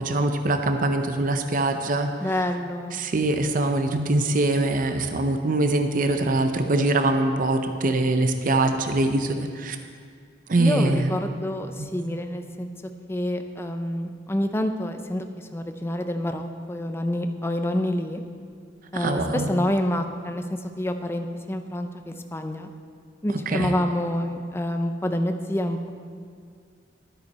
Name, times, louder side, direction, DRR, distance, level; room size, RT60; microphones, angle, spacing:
voice 1, 0.0-2.4 2.9-9.8 10.5-11.1 11.8-12.2 18.9-19.5 23.5-23.7, right 2 dB, 45° right, 6 dB, 0.6 m, -23 dB
voice 2, 2.2-3.0 10.6-12.7 13.1-15.3 15.5-18.2 18.9-22.7 23.2-25.9, left 1 dB, 15° left, 7 dB, 0.5 m, -27 dB
12.5 x 9.1 x 4.2 m, 2.2 s
head